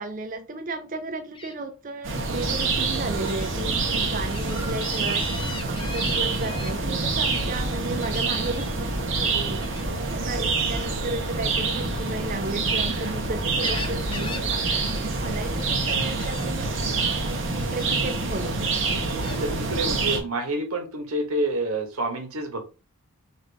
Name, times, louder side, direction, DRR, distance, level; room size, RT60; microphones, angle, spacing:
voice 1, 0.0-5.4 5.6-9.7 10.1-14.8 15.0-18.7, right 2 dB, 40° right, 6 dB, 0.4 m, -34 dB
Gull seagull, 1.3-1.5 2.5-2.7 3.2-3.5 3.9-6.7 8.0-8.7 9.6-9.9 11.7-13.0 13.4-14.5 14.8-15.0 15.3-15.8 16.2-16.5 17.2-17.3 17.8-18.0 18.7-19.4 20.0-20.2, left 3 dB, 20° left, 0.6 m, -39 dB
sound 1, 2.0-20.2, right 3 dB, 60° right, 1.1 m, -26 dB
voice 2, 10.2-10.7 14.3-14.8 19.2-22.7, right 1 dB, 90° right, 4 dB, 1.3 m, -29 dB
5.8 x 2.6 x 3.4 m, 0.33 s
head